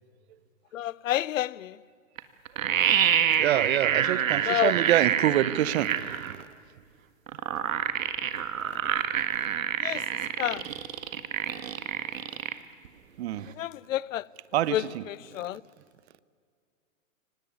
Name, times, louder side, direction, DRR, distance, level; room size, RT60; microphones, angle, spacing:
voice 1, 0.7-1.7 4.5-4.7 9.8-10.0 10.4-10.6 13.6-14.2 14.7-14.8 15.4-15.6, left 13 dB, 75° left, 0.7 m, -28 dB
sound 1, 2.2-2.3 2.4-6.4 7.3-12.5 12.8-12.9, right 9 dB, 75° right, 1.7 m, -27 dB
voice 2, 3.3-6.5 8.6-8.8 13.2-13.5 14.5-15.1 15.3-15.5, right 13 dB, 50° right, 1.0 m, -27 dB
24.0 x 18.5 x 9.5 m
hypercardioid pair, 140°, 40 cm